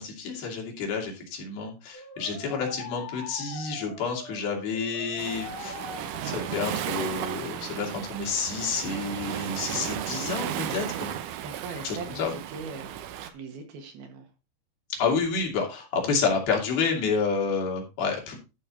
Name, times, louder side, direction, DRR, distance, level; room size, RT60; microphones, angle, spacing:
voice 1, 0.0-5.8 6.2-11.1 11.8-12.3 14.9-18.4, left 5 dB, 70° left, 1 dB, 4.1 m, -29 dB
sound 1, 1.9-7.1, left 3 dB, 85° left, 4.5 m, -42 dB
Waves surf, 5.2-13.3, right 10 dB, 90° right, 1.8 m, -35 dB
voice 2, 11.4-14.3, right 4 dB, 70° right, 4 dB, 3.5 m, -41 dB
12.0 x 5.5 x 4.2 m, 0.27 s
omnidirectional pair, 4.7 m